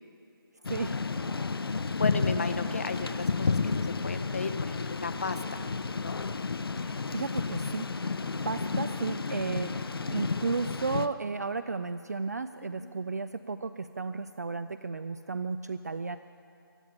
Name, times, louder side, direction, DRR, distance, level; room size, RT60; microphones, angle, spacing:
Thunder / Rain, 0.6-11.1, left 4 dB, 70° left, 0.7 m, -31 dB
voice 1, 1.9-5.7 6.0-6.2 12.8-12.9, left 4 dB, 35° left, 11 dB, 0.7 m, -35 dB
voice 2, 6.8-8.2 8.5-16.2, right 4 dB, 45° right, 12 dB, 0.3 m, -34 dB
23.5 x 8.8 x 5.8 m, 2.5 s
figure-of-eight pair, 175°, 13 cm